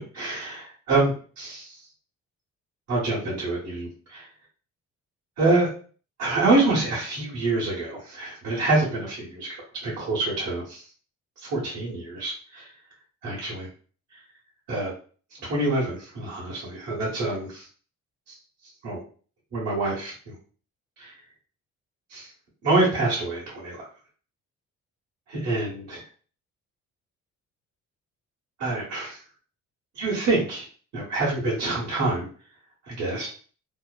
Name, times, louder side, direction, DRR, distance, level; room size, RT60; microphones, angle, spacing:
voice 1, 0.1-1.8 2.9-4.3 5.4-5.7 6.2-10.8 11.4-12.7 13.2-13.7 14.7-14.9 15.4-17.7 18.3-18.4 18.8-19.0 19.5-20.3 21.0-21.1 22.1-22.3 22.6-23.9 25.3-26.0 28.6-29.2 29.9-30.7 30.9-32.2 32.9-33.3, right 2 dB, 60° right, -6 dB, 1.2 m, -26 dB
2.9 x 2.0 x 2.3 m, 0.40 s
cardioid pair, 90°, 30 cm